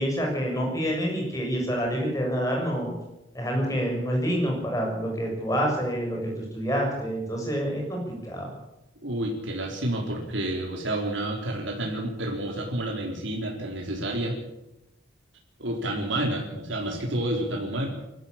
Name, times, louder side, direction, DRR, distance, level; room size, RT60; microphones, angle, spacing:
voice 1, 0.0-2.9 3.3-8.5, equal, 15° left, -1 dB, 7.5 m, -27 dB
voice 2, 9.0-14.4 15.6-17.9, right 1 dB, 75° right, 0 dB, 3.9 m, -29 dB
22.0 x 13.5 x 8.8 m, 0.92 s
head